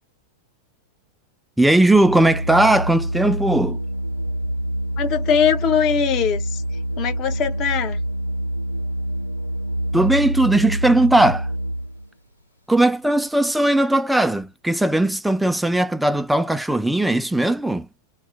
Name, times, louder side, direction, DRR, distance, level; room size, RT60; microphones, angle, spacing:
voice 1, 1.6-3.8 9.9-11.5 12.7-17.9, right 1 dB, 5° right, 0.3 m, -18 dB
Organ, 1.8-12.1, equal, 90° left, 0.7 m, -26 dB
voice 2, 5.0-8.0, left 7 dB, 35° left, 0.6 m, -21 dB
2.3 x 2.1 x 3.6 m
figure-of-eight pair, 90°, 0 cm